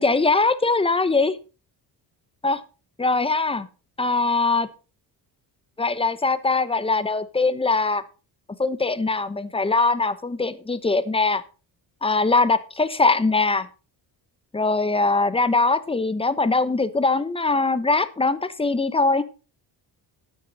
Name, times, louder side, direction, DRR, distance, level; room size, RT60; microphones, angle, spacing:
voice 1, 0.0-1.4 2.4-2.6 3.0-3.7 4.0-4.7 5.8-8.0 8.6-11.4 12.0-13.7 14.5-19.2, left 3 dB, 15° left, 14 dB, 1.0 m, -21 dB
13.0 x 9.4 x 4.1 m, 0.33 s
cardioid pair, 130°, 41 cm